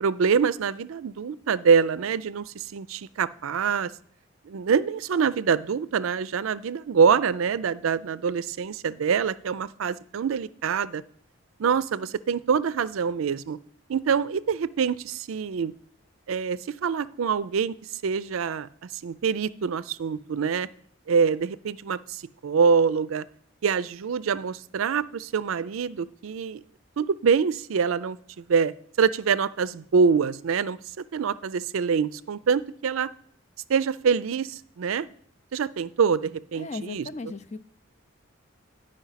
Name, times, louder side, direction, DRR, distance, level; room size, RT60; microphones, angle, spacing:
voice 1, 0.0-3.9 4.4-11.0 11.6-13.6 13.9-15.7 16.3-17.7 18.0-18.7 19.0-20.7 21.1-23.2 23.6-26.6 27.0-33.1 33.7-35.1 35.5-37.1, right 6 dB, 85° right, 17 dB, 0.4 m, -25 dB
voice 2, 36.5-37.6, left 3 dB, 35° left, 10 dB, 0.5 m, -36 dB
10.5 x 5.2 x 5.7 m, 0.63 s
head